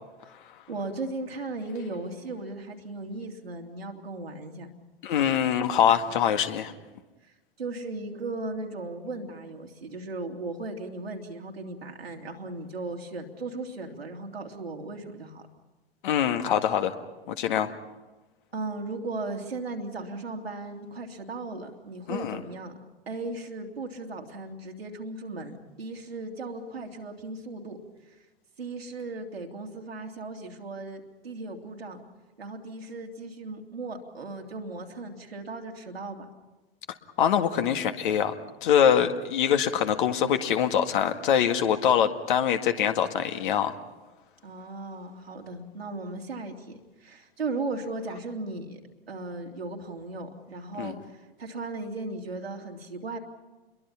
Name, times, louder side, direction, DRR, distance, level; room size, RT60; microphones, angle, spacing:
voice 1, 0.7-4.7 7.2-7.3 7.6-15.5 18.5-22.7 23.1-27.8 28.6-32.0 32.4-36.3 44.4-48.8 49.1-53.2, right 2 dB, 75° right, 1 dB, 3.0 m, -37 dB
voice 2, 5.0-6.7 16.0-16.9 17.3-17.7 22.1-22.4 37.2-38.3 38.6-43.7 50.8-50.9, left 9 dB, 55° left, 7 dB, 2.0 m, -24 dB
29.5 x 22.5 x 5.8 m, 1.1 s
figure-of-eight pair, 95°, 30 cm